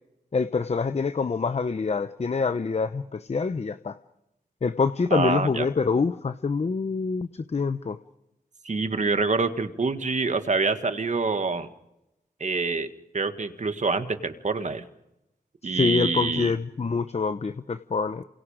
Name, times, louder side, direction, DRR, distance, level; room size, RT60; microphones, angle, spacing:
voice 1, 0.3-4.0 4.6-8.0 15.6-18.2, left 4 dB, 45° left, 11 dB, 0.9 m, -26 dB
voice 2, 5.1-5.7 8.6-11.7 12.4-12.9 13.1-14.8 15.6-16.5, right 4 dB, 50° right, 9 dB, 1.8 m, -26 dB
28.5 x 28.0 x 5.1 m, 0.90 s
wide cardioid pair, 90°, 16 cm